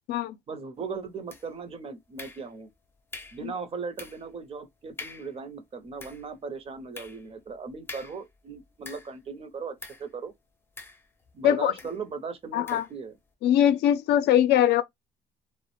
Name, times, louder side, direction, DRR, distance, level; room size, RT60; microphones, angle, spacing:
voice 1, 0.5-2.7 3.3-10.3 11.3-13.1, right 5 dB, 35° right, 0.6 m, -38 dB
sound 1, 1.3-1.7 2.2-2.7 3.1-3.5 4.0-4.3 4.6-4.7 5.0-5.4 5.8-9.3 9.8-10.1 10.8-11.4 11.8-12.0 12.7-13.0, left 3 dB, 15° left, 0.5 m, -45 dB
voice 2, 12.5-12.8 13.4-14.8, left 11 dB, 80° left, 0.4 m, -21 dB
2.2 x 2.0 x 3.1 m
cardioid pair, 110°, 17 cm